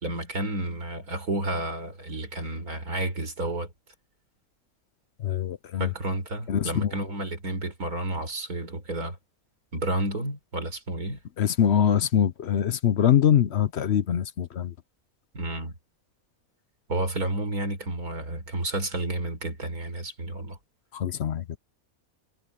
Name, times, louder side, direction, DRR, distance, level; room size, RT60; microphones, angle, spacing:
voice 1, 0.0-3.7 5.8-9.2 9.7-11.2 15.3-15.8 16.9-20.6, right 1 dB, 80° right, 5.2 m, -31 dB
voice 2, 5.2-5.9 6.5-7.0 11.4-14.7 20.9-21.6, left 9 dB, 55° left, 0.9 m, -23 dB
omnidirectional pair, 1.5 m